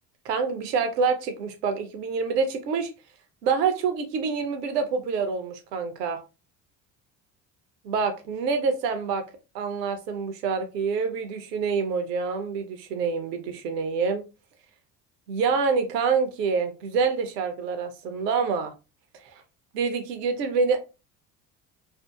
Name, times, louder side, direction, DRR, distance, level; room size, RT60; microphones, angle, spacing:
voice 1, 0.2-2.9 3.4-6.2 7.8-9.2 9.5-14.2 15.3-18.7 19.2-19.4 19.7-20.8, right 5 dB, 75° right, 7 dB, 0.7 m, -26 dB
2.7 x 2.4 x 2.2 m, 0.29 s
figure-of-eight pair, 60°, 48 cm